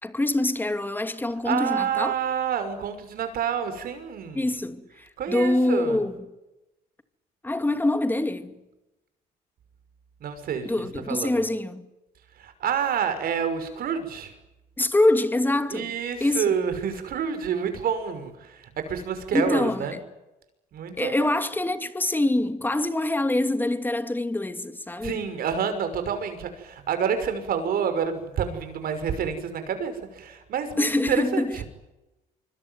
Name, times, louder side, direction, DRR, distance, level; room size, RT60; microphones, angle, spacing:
voice 1, 0.0-2.1 4.3-4.9 5.3-6.3 7.4-8.5 10.6-11.9 14.8-16.5 19.3-20.0 21.0-25.3 30.8-31.5, left 2 dB, 10° left, 2.6 m, -25 dB
voice 2, 1.4-4.6 5.2-6.0 10.2-10.7 11.1-11.4 12.4-14.3 15.7-18.6 18.9-20.0 20.7-21.3 25.0-31.6, right 7 dB, 60° right, 6.0 m, -28 dB
25.5 x 24.5 x 9.4 m
cardioid pair, 110°, 17 cm